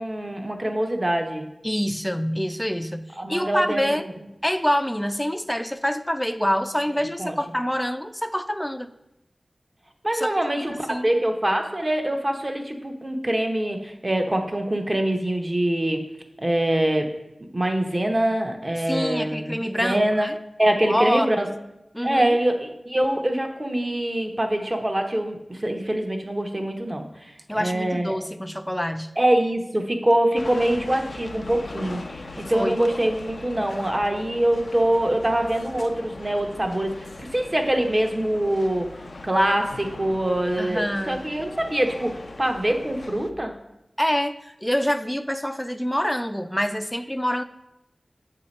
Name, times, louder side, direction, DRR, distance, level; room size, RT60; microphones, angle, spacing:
voice 1, 0.0-1.4 3.2-4.0 7.2-7.4 10.0-16.0 16.4-17.1 17.5-20.3 20.6-21.5 22.0-28.2 29.2-38.9 39.2-43.5, right 1 dB, 35° right, 4 dB, 0.8 m, -24 dB
voice 2, 1.6-4.1 4.4-8.9 10.1-10.3 10.5-11.1 18.9-20.3 20.9-21.5 21.9-22.4 27.5-29.1 32.5-32.8 40.6-41.2 44.0-47.4, equal, 10° left, 10 dB, 0.4 m, -26 dB
sound 1, 30.4-43.3, left 2 dB, 75° left, 0.4 m, -40 dB
7.1 x 2.8 x 5.2 m, 0.87 s
wide cardioid pair, 45°, 0 cm